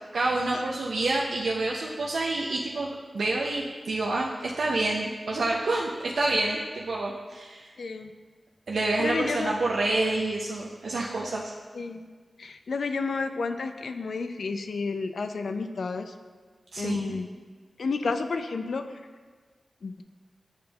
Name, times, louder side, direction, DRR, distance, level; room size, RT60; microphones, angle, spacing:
voice 1, 0.1-7.7 8.7-11.5 16.7-17.2, right 2 dB, 85° right, -3 dB, 0.5 m, -28 dB
voice 2, 7.8-8.1 9.0-9.5 11.7-12.0 12.4-16.1 16.8-17.3 17.8-18.8 19.8-20.0, left 4 dB, 80° left, 8 dB, 0.3 m, -31 dB
8.7 x 5.1 x 2.3 m, 1.5 s
wide cardioid pair, 70°, 0 cm